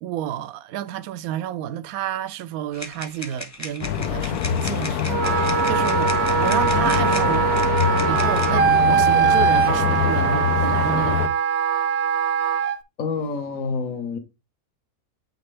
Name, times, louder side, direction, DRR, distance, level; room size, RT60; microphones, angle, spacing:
voice 1, 0.0-6.1 6.4-7.6 8.0-11.3, right 11 dB, 75° right, 1.0 m, -30 dB
sound 1, 2.7-8.5, left 2 dB, 15° left, 0.7 m, -36 dB
sound 2, 3.8-11.3, left 9 dB, 90° left, 1.2 m, -24 dB
Wind instrument woodwind instrument, 5.1-12.8, right 7 dB, 60° right, 0.7 m, -21 dB
voice 2, 13.0-14.2, left 4 dB, 65° left, 1.5 m, -27 dB
8.7 x 4.2 x 3.3 m
omnidirectional pair, 1.5 m